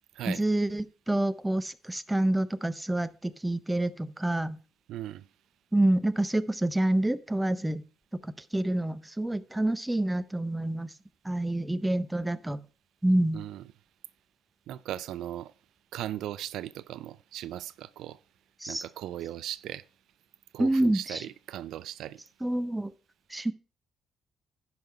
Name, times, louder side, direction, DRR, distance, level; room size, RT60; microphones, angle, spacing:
voice 1, 0.3-4.6 5.7-7.8 8.2-10.9 11.2-12.6 13.0-13.4 18.6-18.8 20.6-21.2 22.4-22.9 23.3-23.5, right 1 dB, 10° right, 0.6 m, -27 dB
voice 2, 4.9-5.2 13.3-13.6 14.7-15.5 15.9-18.2 18.7-19.8 20.5-22.2, right 12 dB, 85° right, 0.3 m, -38 dB
10.5 x 5.6 x 4.3 m
cardioid pair, 90°, 0 cm